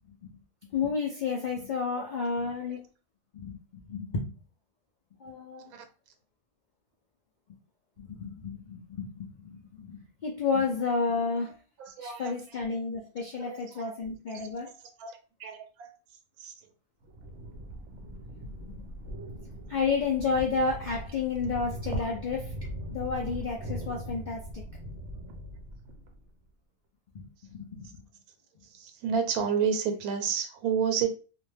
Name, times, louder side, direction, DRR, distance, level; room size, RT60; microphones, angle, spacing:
voice 1, 0.7-2.9 3.3-4.4 5.2-5.7 8.0-11.6 12.0-14.7 18.4-18.9 19.7-22.6 22.9-24.6 27.1-28.1, left 4 dB, 80° left, 0.4 m, -31 dB
voice 2, 2.0-2.3 2.7-2.8 5.7-5.8 11.8-12.3 13.4-13.9 14.3-14.7 15.0-15.9 16.4-16.5 22.0-22.1 28.6-31.1, right 7 dB, 85° right, 1.1 m, -31 dB
sound 1, 17.0-26.2, right 1 dB, 65° right, 0.8 m, -40 dB
2.5 x 2.1 x 3.2 m
omnidirectional pair, 1.5 m